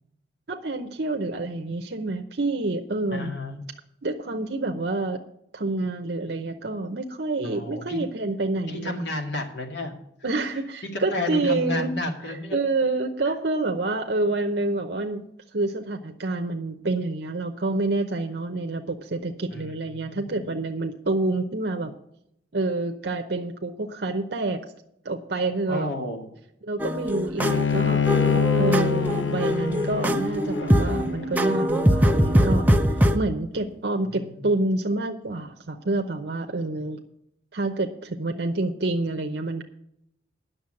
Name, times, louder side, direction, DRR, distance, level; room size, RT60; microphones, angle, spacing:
voice 1, 0.5-3.3 4.0-5.2 5.5-8.9 10.2-11.9 12.5-15.3 15.5-21.9 22.5-24.6 25.0-25.9 26.6-28.1 28.3-37.0 37.5-39.6, right 2 dB, 60° right, 4 dB, 0.8 m, -28 dB
voice 2, 3.1-3.6 7.4-8.0 8.7-10.0 10.9-12.6 19.5-20.4 25.7-26.3 34.0-34.4, left 1 dB, 70° left, 3 dB, 2.1 m, -32 dB
sound 1, 26.8-33.2, equal, 10° right, 0.6 m, -22 dB
Bowed string instrument, 27.4-32.7, left 6 dB, 90° left, 0.6 m, -26 dB
10.0 x 6.6 x 7.6 m, 0.76 s
head